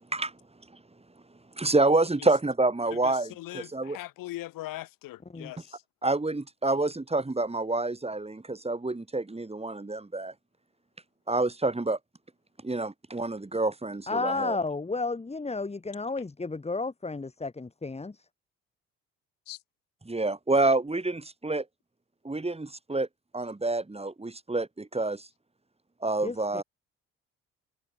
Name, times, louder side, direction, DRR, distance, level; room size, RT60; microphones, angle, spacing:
voice 1, 1.6-4.0 6.0-10.3 11.3-12.0 12.6-14.6 20.1-21.6 22.2-23.1 23.3-25.3 26.0-26.6, right 2 dB, 15° right, 6.1 m, -28 dB
voice 2, 2.9-5.8 19.5-19.6, left 16 dB, 70° left, 4.6 m, -40 dB
voice 3, 14.1-18.2 26.2-26.6, left 3 dB, 20° left, 1.8 m, -32 dB
hypercardioid pair, 55°, 34 cm